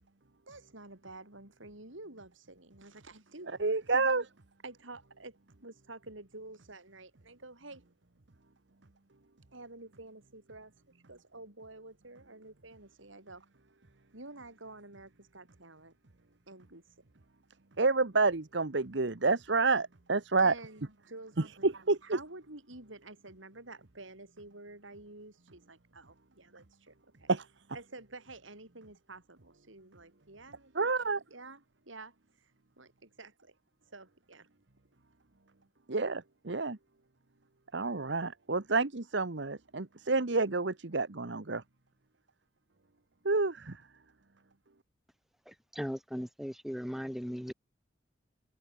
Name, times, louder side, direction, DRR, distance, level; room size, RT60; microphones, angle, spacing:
voice 1, 0.5-3.5 3.9-4.3 4.6-7.8 9.5-13.4 14.1-16.0 16.5-16.8 20.4-21.7 22.0-27.3 27.7-32.5 32.8-33.6 33.9-34.5, right 2 dB, 90° right, 7.3 m, -50 dB
voice 2, 3.6-4.2 17.8-20.5 21.6-22.2 27.3-27.4 30.7-31.2 35.9-36.8 37.7-41.6 43.2-43.8, right 3 dB, 70° right, 1.2 m, -29 dB
voice 3, 45.5-47.5, equal, ahead, 5.0 m, -38 dB
head